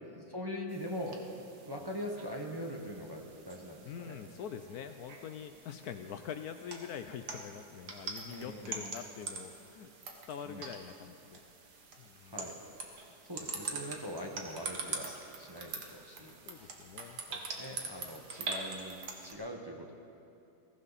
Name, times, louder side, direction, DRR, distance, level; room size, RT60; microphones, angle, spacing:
voice 1, 0.1-4.2 8.2-8.9 10.4-10.6 12.2-12.5 13.3-16.7 17.3-19.9, equal, 15° right, 0 dB, 1.1 m, -42 dB
sound 1, 0.7-19.3, right 4 dB, 70° right, 2.0 m, -44 dB
voice 2, 3.9-9.9 10.3-11.4 12.0-12.4 16.5-17.6, left 8 dB, 70° left, 8 dB, 1.1 m, -44 dB
21.0 x 15.5 x 4.1 m, 2.6 s
omnidirectional pair, 1.8 m